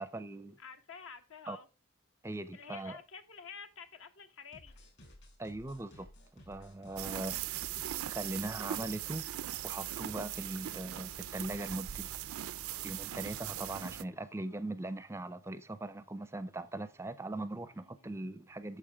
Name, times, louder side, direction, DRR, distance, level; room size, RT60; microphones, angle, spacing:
voice 1, 0.0-0.6 1.5-1.6 2.2-3.0 5.4-6.1 6.5-7.4 8.1-9.2 9.6-12.1 12.8-18.8, right 2 dB, 10° right, 0.5 m, -40 dB
voice 2, 0.6-1.7 2.5-4.9 17.8-17.9, left 6 dB, 70° left, 1.1 m, -49 dB
sound 1, 4.5-8.1 8.5-9.0 9.4-9.5 9.8-10.0 10.3-12.0, left 1 dB, 55° left, 4.1 m, -57 dB
sound 2, 7.0-14.0, right 12 dB, 85° right, 0.4 m, -40 dB
8.7 x 6.9 x 3.5 m
head